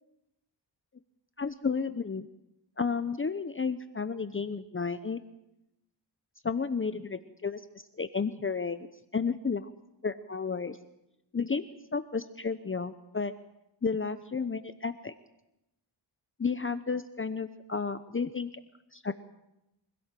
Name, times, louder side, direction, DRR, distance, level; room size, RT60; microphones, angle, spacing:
voice 1, 1.4-2.3 2.8-5.2 6.4-8.9 9.1-9.7 10.0-10.8 11.3-11.6 11.9-13.3 13.8-15.1 16.4-18.5 18.9-19.1, left 5 dB, 25° left, 11 dB, 0.9 m, -32 dB
24.5 x 16.5 x 7.6 m, 0.89 s
cardioid pair, 80°, 46 cm